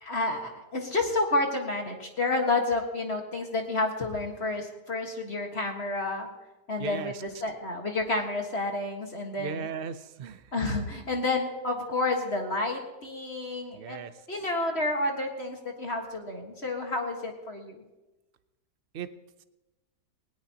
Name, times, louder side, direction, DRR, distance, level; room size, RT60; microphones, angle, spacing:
voice 1, 0.0-6.3 6.7-9.7 10.5-17.8, left 2 dB, 40° left, 2 dB, 1.8 m, -30 dB
voice 2, 6.8-7.2 9.4-10.4 13.7-14.1 18.9-19.1, right 6 dB, 50° right, 11 dB, 0.7 m, -37 dB
19.5 x 18.0 x 2.9 m, 1.1 s
omnidirectional pair, 1.8 m